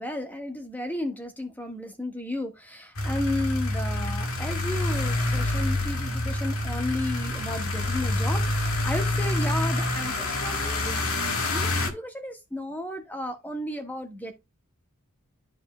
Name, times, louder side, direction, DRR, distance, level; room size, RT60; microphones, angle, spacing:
voice 1, 0.0-10.9 11.5-14.3, left 1 dB, 10° left, 1.5 m, -33 dB
sound 1, 3.0-11.9, left 1 dB, 70° left, 1.7 m, -27 dB
13.0 x 5.0 x 2.2 m
head